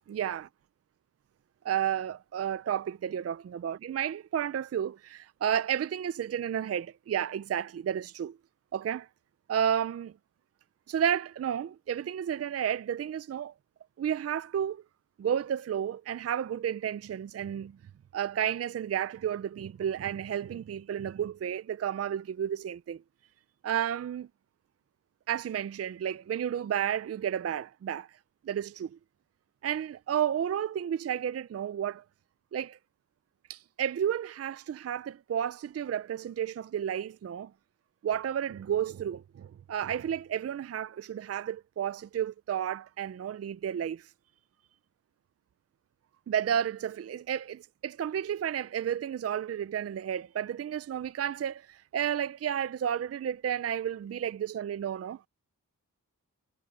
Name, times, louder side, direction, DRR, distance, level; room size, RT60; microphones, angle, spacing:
voice 1, 0.1-0.5 1.6-8.4 8.7-9.1 9.5-10.1 10.9-13.5 14.0-14.8 15.2-17.8 18.1-23.0 23.6-24.3 25.3-28.2 28.4-29.0 29.6-32.0 32.5-32.8 33.5-37.5 38.0-44.1 46.3-55.2, right 9 dB, 45° right, 0.4 m, -32 dB
wide cardioid pair, 80°, 34 cm